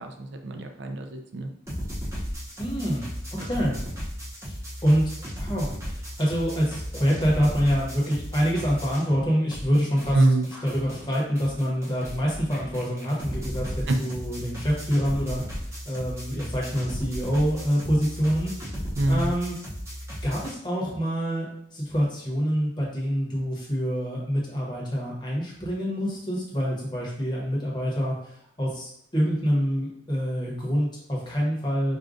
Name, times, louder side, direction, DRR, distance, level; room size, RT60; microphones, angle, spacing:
voice 1, 0.0-1.5 10.1-10.5 13.9-14.0 19.0-19.3, right 2 dB, 60° right, 4 dB, 0.4 m, -24 dB
sound 1, 1.7-9.2 9.5-20.5, equal, 15° right, 0.6 m, -35 dB
voice 2, 2.6-3.8 4.4-4.6 4.8-5.0 5.4-15.4 15.9-18.7 19.1-19.6 20.2-32.0, equal, 20° left, -4 dB, 0.9 m, -26 dB
4.9 x 2.2 x 2.5 m, 0.69 s
head